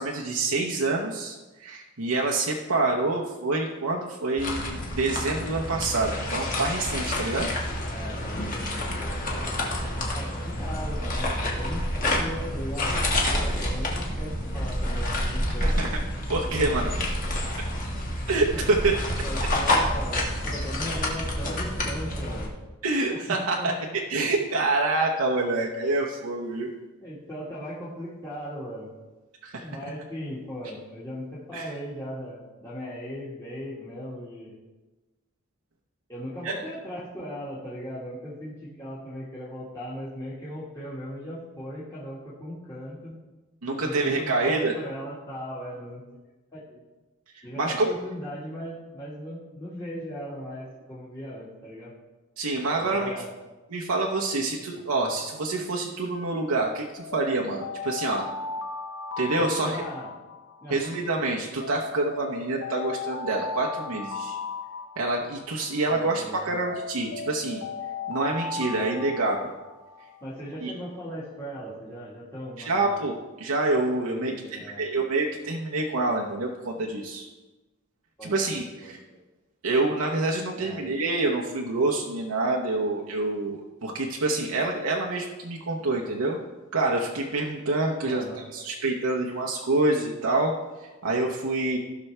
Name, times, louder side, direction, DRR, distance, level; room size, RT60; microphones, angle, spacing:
voice 1, 0.0-7.5 15.6-15.9 16.3-16.9 18.3-18.9 22.8-23.7 24.1-26.7 29.4-29.6 31.5-31.6 36.4-36.6 43.6-44.7 47.6-47.9 52.4-53.1 53.7-58.3 59.2-59.8 60.7-64.4 65.0-67.6 68.1-69.5 70.6-70.7 72.6-77.3 78.2-79.0 79.6-86.4 86.7-88.2 88.5-90.5 90.8-91.8, right 2 dB, 90° right, -1 dB, 0.9 m, -27 dB
sound 1, 4.4-22.5, left 1 dB, 35° left, 1.6 m, -28 dB
voice 2, 7.9-9.5 10.1-13.0 13.3-15.8 16.5-16.7 17.0-17.1 18.5-18.6 19.2-22.6 23.1-23.7 27.0-28.9 29.6-34.6 36.1-43.2 43.7-46.0 46.5-46.8 47.4-51.9 52.8-53.3 54.7-54.8 59.4-60.1 60.6-60.8 65.9-66.4 70.2-72.9 74.1-74.9 78.2-79.2 80.5-80.8 85.7-85.9 88.0-88.4, equal, 15° left, -10 dB, 1.8 m, -38 dB
Alarm, 56.9-61.1 61.6-66.1 66.6-70.4, left 4 dB, 65° left, 0.9 m, -36 dB
16.0 x 6.1 x 3.3 m, 1.1 s
head